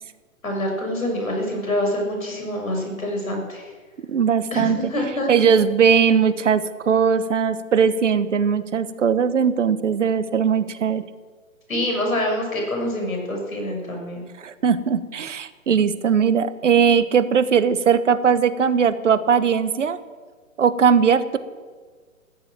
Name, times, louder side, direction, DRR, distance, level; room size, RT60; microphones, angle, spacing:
voice 1, 0.4-3.7 4.5-5.3 11.7-14.2, left 1 dB, 75° left, 1 dB, 6.7 m, -26 dB
voice 2, 4.1-4.9 5.3-11.0 14.4-20.0 20.6-21.4, right 7 dB, 60° right, 14 dB, 1.3 m, -19 dB
14.0 x 10.5 x 8.9 m, 1.5 s
figure-of-eight pair, 130°, 41 cm